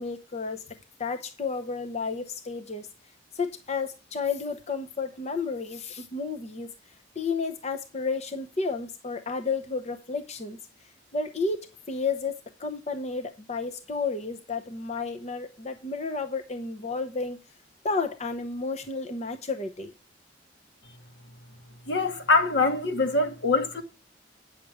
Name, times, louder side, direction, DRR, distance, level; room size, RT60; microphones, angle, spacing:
voice 1, 0.0-2.9 3.3-6.7 7.2-10.6 11.1-17.4 17.8-19.9, left 4 dB, 35° left, 0.7 m, -32 dB
voice 2, 21.9-23.8, left 3 dB, 75° left, 1.5 m, -24 dB
9.2 x 6.6 x 4.8 m
head